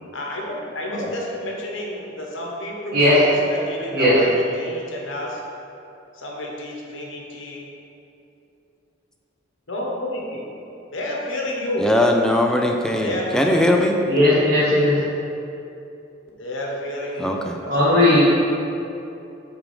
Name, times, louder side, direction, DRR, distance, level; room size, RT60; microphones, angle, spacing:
voice 1, 0.1-5.4 6.1-7.7 9.7-10.4 10.9-11.9 13.0-13.9 14.3-14.6 16.4-17.3 17.6-18.2, left 1 dB, 80° left, -2 dB, 1.2 m, -30 dB
voice 2, 11.8-14.0 17.2-17.6, left 1 dB, 5° left, 2 dB, 0.5 m, -20 dB
voice 3, 14.0-15.0 17.7-18.2, left 1 dB, 50° right, -11 dB, 1.3 m, -17 dB
8.6 x 3.6 x 4.9 m, 2.8 s
head